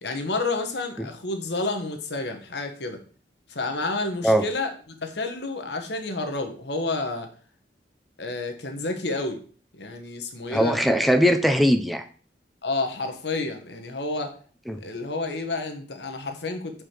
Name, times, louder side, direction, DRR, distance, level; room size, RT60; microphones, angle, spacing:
voice 1, 0.0-3.0 3.5-4.7 5.0-7.3 8.2-9.4 9.7-10.8 12.6-14.3 14.8-16.8, left 3 dB, 70° left, 6 dB, 1.2 m, -30 dB
voice 2, 10.5-12.1 14.7-14.8, equal, ahead, 7 dB, 0.5 m, -20 dB
4.9 x 4.9 x 5.9 m, 0.42 s
head